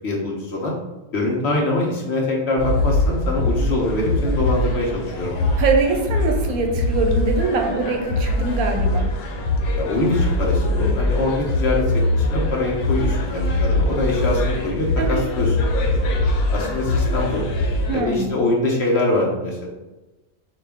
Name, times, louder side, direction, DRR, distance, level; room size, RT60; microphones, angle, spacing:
voice 1, 0.0-0.7 1.1-5.3 9.8-15.6 16.5-17.4 17.9-19.7, left 2 dB, 55° left, -2 dB, 0.9 m, -23 dB
sound 1, 2.6-18.0, left 2 dB, 85° left, 1.1 m, -22 dB
voice 2, 5.6-9.1 15.0-15.3 17.9-18.3, right 3 dB, 75° right, 2 dB, 1.1 m, -23 dB
5.0 x 2.4 x 3.4 m, 1.1 s
omnidirectional pair, 1.5 m